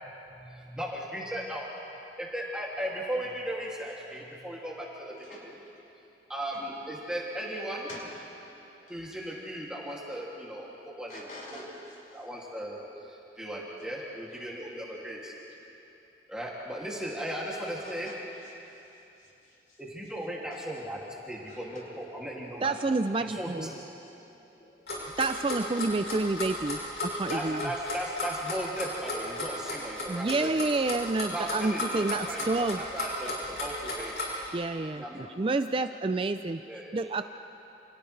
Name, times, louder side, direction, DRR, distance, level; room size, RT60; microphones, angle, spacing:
voice 1, 0.7-1.8 2.2-5.1 5.4-5.5 6.3-7.9 8.5-11.2 11.5-11.7 12.1-15.3 16.3-18.1 19.8-22.7 23.2-23.7 27.3-30.5 31.3-34.2 35.0-35.3 36.7-37.0, equal, 5° right, -5 dB, 2.5 m, -37 dB
voice 2, 5.1-5.7 6.5-6.7 7.9-8.0 11.1-12.2 14.3-14.6 14.9-15.1 15.5-15.6 17.8-19.9 20.5-20.6 21.4-22.5 23.7-25.1, left 1 dB, 45° left, -5 dB, 5.9 m, -51 dB
voice 3, 22.6-23.7 25.2-27.7 30.1-32.8 34.5-36.6 36.9-37.3, right 3 dB, 30° right, 9 dB, 0.4 m, -29 dB
Clock, 24.9-34.5, left 2 dB, 70° left, 6.6 m, -34 dB
29.5 x 28.5 x 3.3 m, 3.0 s
head